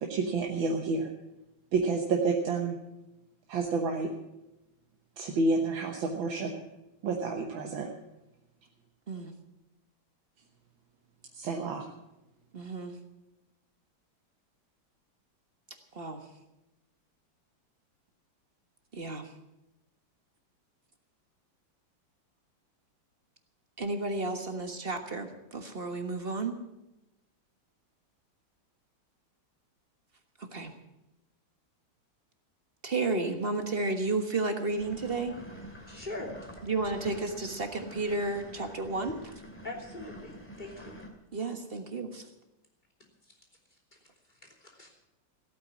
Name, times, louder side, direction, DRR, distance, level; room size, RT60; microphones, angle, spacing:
voice 1, 0.0-1.1 1.7-2.8 3.5-4.1 5.2-6.5 7.0-7.9 11.4-11.9, right 3 dB, 80° right, 2 dB, 2.0 m, -29 dB
voice 2, 12.5-13.0 15.9-16.2 18.9-19.3 23.8-26.6 30.4-30.7 32.8-35.4 36.6-39.2 41.3-42.2, right 3 dB, 30° right, 6 dB, 1.4 m, -32 dB
sound 1, 34.8-41.1, equal, 5° left, 2.2 m, -47 dB
voice 3, 35.9-36.3 39.6-41.0 44.3-44.9, left 2 dB, 20° left, -2 dB, 3.4 m, -42 dB
16.5 x 8.7 x 8.5 m, 0.95 s
omnidirectional pair, 2.1 m